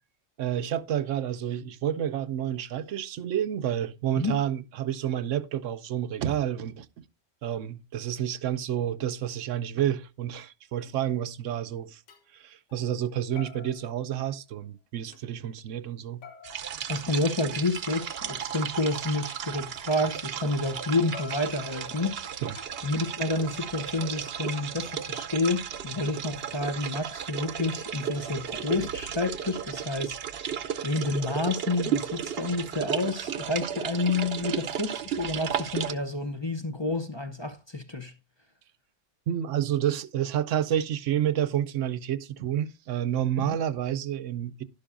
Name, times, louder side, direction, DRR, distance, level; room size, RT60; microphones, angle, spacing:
voice 1, 0.4-7.0 7.4-12.0 12.3-16.2 22.4-22.5 39.3-44.6, right 10 dB, 80° right, 1.0 m, -29 dB
sound 1, 11.5-11.6 12.1-12.3 12.7-13.1 13.4-14.6 15.1-15.2 16.2-18.3 19.9-20.8 21.1-23.0 23.8-25.0, left 4 dB, 75° left, 1.4 m, -49 dB
sound 2, 16.4-35.9, right 8 dB, 60° right, 0.9 m, -34 dB
voice 2, 16.9-22.2 22.8-38.1 43.4-43.6, left 2 dB, 25° left, 0.7 m, -29 dB
11.5 x 11.0 x 2.5 m
omnidirectional pair, 1.3 m